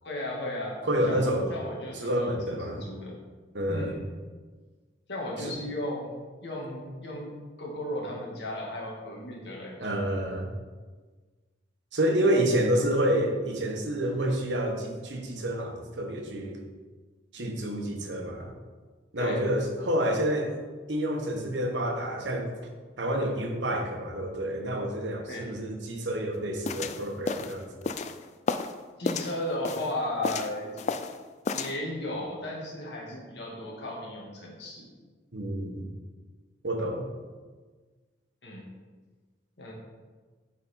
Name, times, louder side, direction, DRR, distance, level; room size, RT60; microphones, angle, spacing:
voice 1, 0.0-0.8 1.1-3.2 3.7-4.0 5.1-6.1 6.4-7.3 7.6-10.0 19.2-19.4 25.3-25.5 29.0-30.8 31.5-34.9 38.4-38.7 39.6-39.7, left 1 dB, 65° left, -3 dB, 1.8 m, -35 dB
voice 2, 0.9-1.5 2.0-2.8 3.5-3.9 5.4-5.5 9.8-10.5 11.9-16.6 17.3-18.5 19.1-20.5 20.9-22.5 23.0-27.9 35.3-35.9 36.6-37.1, right 1 dB, 75° right, 2 dB, 1.1 m, -28 dB
sound 1, 26.7-28.7 29.1-29.9 30.2-31.2 31.5-31.8, left 4 dB, 40° left, 0.3 m, -32 dB
8.4 x 4.3 x 4.3 m, 1.4 s
head